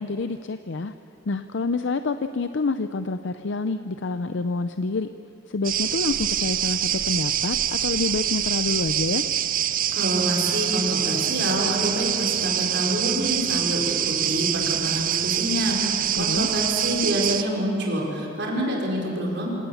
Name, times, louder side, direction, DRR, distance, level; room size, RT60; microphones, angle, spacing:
voice 1, 0.0-0.9 1.3-5.1 5.5-9.3 16.2-16.5, left 3 dB, 70° left, 10 dB, 0.6 m, -27 dB
sound 1, 5.6-17.4, right 10 dB, 45° right, 0.7 m, -25 dB
voice 2, 9.9-19.5, equal, 65° right, -2 dB, 5.0 m, -27 dB
25.5 x 18.0 x 7.2 m, 2.8 s
head